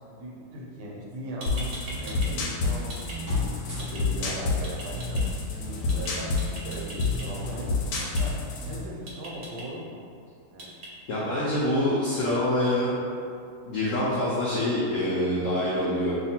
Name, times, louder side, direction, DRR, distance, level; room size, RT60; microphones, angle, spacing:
voice 1, 0.0-5.2 5.6-6.3 6.6-7.7 8.1-10.0 10.5-10.8 11.1-11.5, right 1 dB, 75° right, -4 dB, 1.2 m, -39 dB
sound 1, 1.1-1.2 1.4-2.3 2.6-3.2 3.8-4.0 4.6-5.2 5.9-6.1 6.4-7.2 7.9-8.2 9.1-9.6 10.6-10.9, right 1 dB, 60° right, 0.7 m, -40 dB
sound 2, 1.5-8.8, left 3 dB, 70° left, 1.0 m, -29 dB
sound 3, 3.2-4.0 5.4-5.5 5.8-6.0 6.2-8.9, equal, 15° right, 0.7 m, -46 dB
voice 2, 11.1-12.9 13.7-16.1, left 1 dB, 85° left, -7 dB, 0.7 m, -25 dB
2.8 x 2.5 x 4.2 m, 2.4 s
omnidirectional pair, 2.0 m